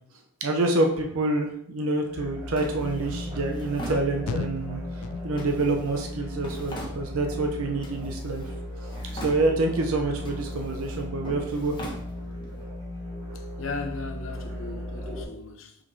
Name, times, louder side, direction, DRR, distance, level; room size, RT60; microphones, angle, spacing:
voice 1, 0.4-8.5 9.1-11.8, right 2 dB, 75° right, 0.7 m, -27 dB
sound 1, 2.1-15.2, left 1 dB, 20° right, 2.2 m, -36 dB
Drawer open or close, 2.6-4.6 5.3-7.4 7.8-8.6 8.8-9.8 10.2-12.6, equal, 20° left, 1.0 m, -42 dB
sound 2, 3.1-3.3 3.8-4.0 4.3-4.7 5.0-5.5 5.8-6.2 6.5-6.9 7.3-7.6 8.0-8.2, left 5 dB, 85° left, 0.4 m, -38 dB
voice 2, 13.3-15.8, left 3 dB, 60° left, 0.8 m, -37 dB
5.7 x 5.0 x 3.2 m
head